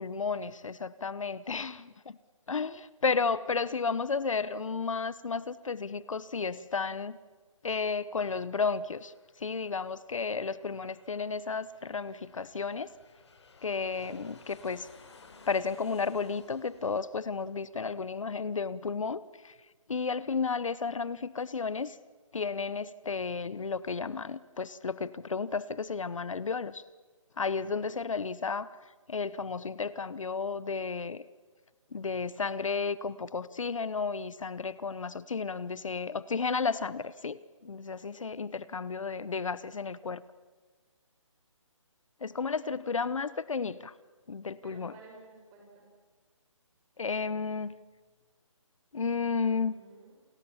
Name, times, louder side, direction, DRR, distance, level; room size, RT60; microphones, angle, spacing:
voice 1, 0.0-2.2 2.5-7.2 7.6-12.9 13.6-14.9 15.5-19.5 19.9-22.0 22.3-26.8 27.4-28.7 29.1-31.2 31.9-40.2 42.2-43.9 44.3-44.9 47.0-47.7 48.9-49.7, left 5 dB, 70° left, 17 dB, 1.0 m, -33 dB
Aircraft, 7.9-18.9, left 4 dB, 55° left, 4.2 m, -58 dB
voice 2, 44.6-45.9 49.4-50.2, right 3 dB, 15° right, 1 dB, 5.3 m, -54 dB
29.5 x 23.0 x 7.2 m, 1.4 s
hypercardioid pair, 170°, 17 cm